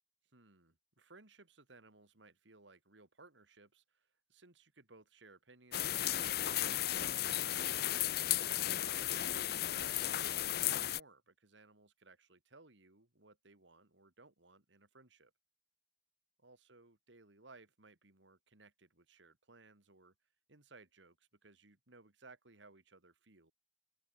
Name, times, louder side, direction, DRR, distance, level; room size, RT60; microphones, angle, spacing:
voice 1, 0.3-7.8 8.7-15.3 16.4-20.1 20.5-23.5, right 3 dB, 80° right, 2.7 m, -61 dB
sound 1, 5.7-11.0, left 12 dB, 55° left, 0.6 m, -34 dB
open air
head